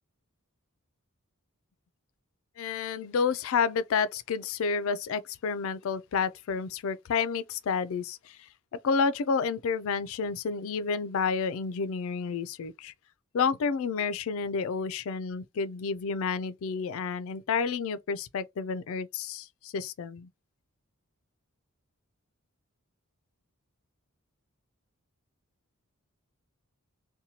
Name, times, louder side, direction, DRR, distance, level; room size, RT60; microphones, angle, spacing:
voice 1, 2.6-8.4 8.7-12.9 13.3-20.3, left 5 dB, 65° left, 0.3 m, -30 dB
2.7 x 2.2 x 2.9 m
head